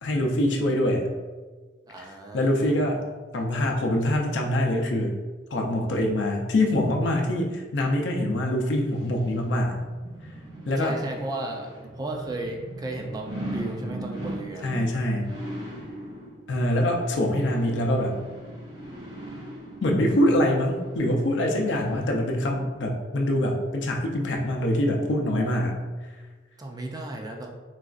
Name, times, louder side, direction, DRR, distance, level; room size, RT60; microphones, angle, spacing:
voice 1, 0.0-1.1 2.0-3.0 3.3-5.2 5.5-9.8 10.7-11.0 14.6-15.3 16.5-18.2 19.8-25.8, left 1 dB, 80° left, 1 dB, 0.5 m, -24 dB
voice 2, 1.9-2.8 10.7-11.7 12.0-14.7 26.6-27.5, right 2 dB, 20° right, 2 dB, 0.3 m, -34 dB
sound 1, 8.8-22.7 23.1-23.2, right 1 dB, 85° right, 1.3 m, -40 dB
3.9 x 2.3 x 2.4 m, 1.3 s
head